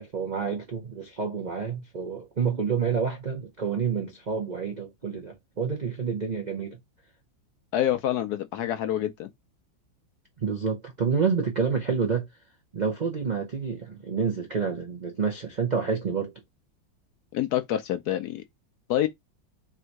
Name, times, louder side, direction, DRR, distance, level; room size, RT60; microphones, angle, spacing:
voice 1, 0.0-6.8 10.4-12.3 12.7-16.3, right 5 dB, 60° right, 0.4 m, -28 dB
voice 2, 7.7-9.3 17.3-18.4 18.9-19.1, left 12 dB, 70° left, 0.9 m, -27 dB
3.5 x 2.7 x 4.4 m
omnidirectional pair, 2.0 m